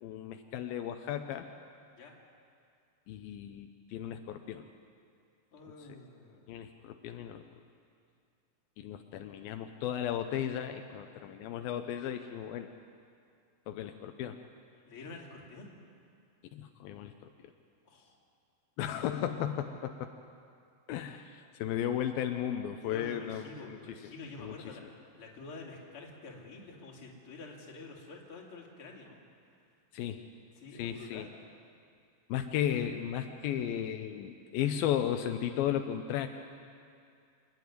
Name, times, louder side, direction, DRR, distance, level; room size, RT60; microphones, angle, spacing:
voice 1, 0.0-1.5 3.1-4.6 6.5-7.4 8.8-12.7 13.7-14.4 16.5-17.1 18.8-20.1 20.9-23.8 24.4-24.6 29.9-30.2 30.8-31.3 32.3-36.3, left 10 dB, 85° left, 6 dB, 2.6 m, -35 dB
voice 2, 5.5-6.5 11.0-11.4 14.9-15.7 17.9-18.1 22.8-29.2 30.6-31.4, left 3 dB, 40° left, -1 dB, 3.1 m, -48 dB
27.0 x 10.5 x 9.5 m, 2.3 s
omnidirectional pair, 4.2 m